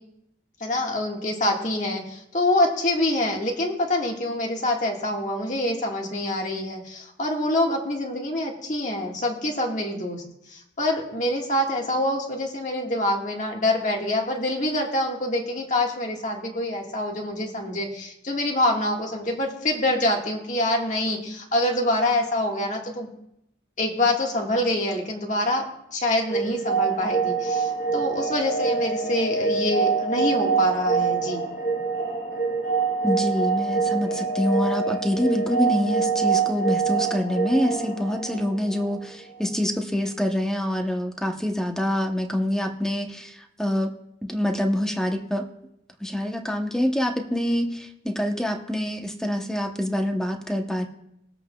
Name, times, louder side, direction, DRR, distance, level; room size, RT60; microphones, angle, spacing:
voice 1, 0.6-23.1 23.8-25.6 25.9-31.4, left 1 dB, 45° left, 0 dB, 1.6 m, -26 dB
sound 1, 26.3-39.0, right 5 dB, 70° left, 2.0 m, -25 dB
voice 2, 33.0-43.9 44.3-45.5 46.0-50.9, left 1 dB, 5° left, 3 dB, 0.9 m, -26 dB
21.0 x 7.9 x 2.3 m, 0.81 s
head